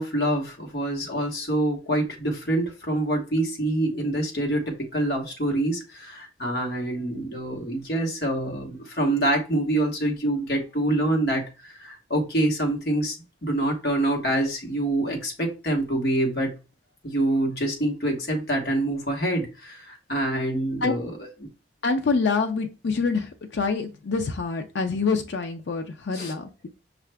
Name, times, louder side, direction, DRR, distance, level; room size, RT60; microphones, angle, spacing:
voice 1, 0.0-13.1 13.4-16.5 17.0-21.2 26.1-26.3, right 1 dB, 60° left, 1.2 m, -26 dB
voice 2, 21.8-26.7, left 4 dB, 85° left, 0.5 m, -26 dB
5.5 x 2.4 x 3.3 m
head